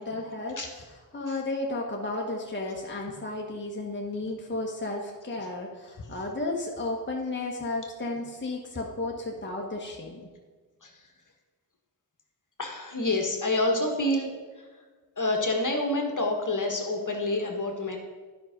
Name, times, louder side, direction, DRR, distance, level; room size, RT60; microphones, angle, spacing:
voice 1, 0.0-10.3, left 2 dB, 25° left, -1 dB, 1.3 m, -33 dB
voice 2, 12.6-14.3 15.2-18.0, left 2 dB, 40° left, 2 dB, 1.6 m, -27 dB
9.4 x 5.7 x 5.2 m, 1.4 s
cardioid pair, 45°, 45 cm